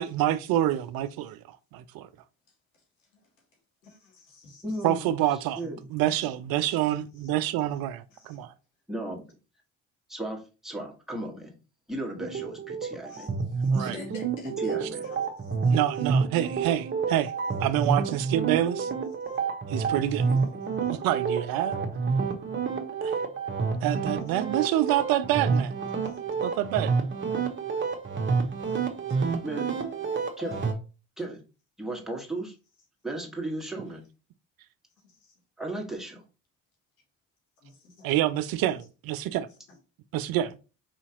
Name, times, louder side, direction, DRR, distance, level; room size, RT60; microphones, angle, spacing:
voice 1, 0.0-2.1 4.8-5.6 5.9-8.5 13.7-13.9 15.7-17.3 17.6-18.9 19.7-20.2 20.8-21.8 23.0-23.2 23.8-25.7 26.4-26.9 38.0-39.5 40.1-40.6, right 13 dB, 65° right, 0.5 m, -27 dB
voice 2, 2.7-3.3 3.8-5.0 5.6-6.3 6.9-7.3 7.6-7.8 8.1-8.4 13.0-14.8 15.0-15.8 17.0-17.2 17.7-18.1 19.2-19.3 20.1-21.0 23.3-23.8 26.0-26.2 28.6-28.8 35.0-35.3 37.6-38.1 39.7-39.8, left 3 dB, 90° left, 1.3 m, -50 dB
voice 3, 4.6-5.1 5.6-5.8 8.9-9.2 10.1-11.5 11.9-13.3 14.6-15.1 29.4-29.7 30.4-30.6 31.2-31.4 31.8-32.5 33.0-34.0 35.6-36.2, right 1 dB, ahead, 1.5 m, -35 dB
sound 1, 12.2-30.7, right 5 dB, 30° right, 1.0 m, -29 dB
4.8 x 2.8 x 2.9 m
hypercardioid pair, 55°, 39 cm